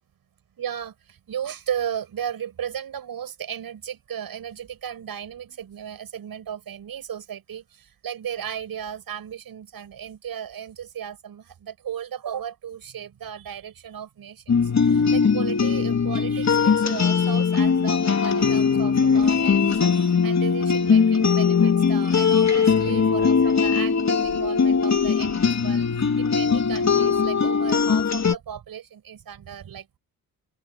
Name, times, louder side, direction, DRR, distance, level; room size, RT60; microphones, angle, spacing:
voice 1, 0.6-30.0, right 9 dB, 70° right, 6.2 m, -35 dB
sound 1, 14.5-28.4, left 6 dB, 45° left, 3.4 m, -20 dB
open air
cardioid pair, 65°, 36 cm